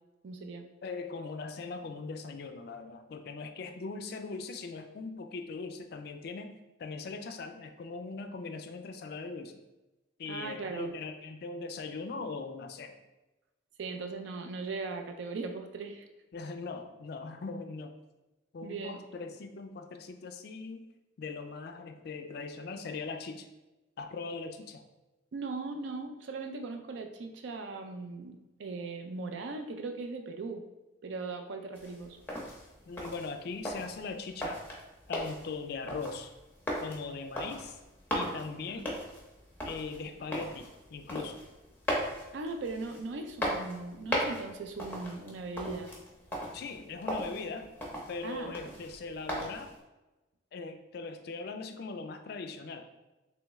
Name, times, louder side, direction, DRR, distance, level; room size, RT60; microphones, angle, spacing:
voice 1, 0.2-0.6 10.3-10.9 13.8-16.1 18.6-19.0 25.3-30.6 31.0-32.2 38.7-38.9 42.3-45.9 48.2-48.6, right 3 dB, 70° right, 5 dB, 0.4 m, -39 dB
voice 2, 0.8-6.5 6.8-9.5 10.2-12.9 16.3-18.0 18.5-20.9 21.2-23.5 24.0-24.8 32.9-34.6 35.1-36.3 36.8-37.8 38.1-38.9 39.6-41.4 46.5-47.7 48.1-49.7 50.5-52.9, left 4 dB, 55° left, 7 dB, 0.3 m, -40 dB
sound 1, 31.7-49.8, equal, 10° left, 0.6 m, -38 dB
3.5 x 3.0 x 3.0 m, 1.1 s
head